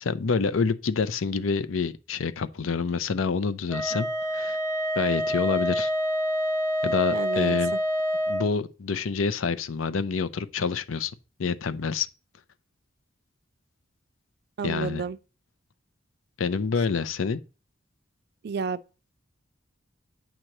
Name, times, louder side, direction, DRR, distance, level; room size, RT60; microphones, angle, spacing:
voice 1, 0.0-4.1 4.3-4.6 5.0-5.9 6.8-7.7 8.3-11.1 11.4-12.1 14.6-15.0 16.4-17.4, left 5 dB, 85° left, 0.6 m, -27 dB
Wind instrument woodwind instrument, 3.7-8.5, equal, 15° left, 1.1 m, -27 dB
voice 2, 7.1-7.6 14.6-15.2 18.4-18.8, right 5 dB, 55° right, 0.4 m, -31 dB
8.8 x 3.0 x 6.5 m
head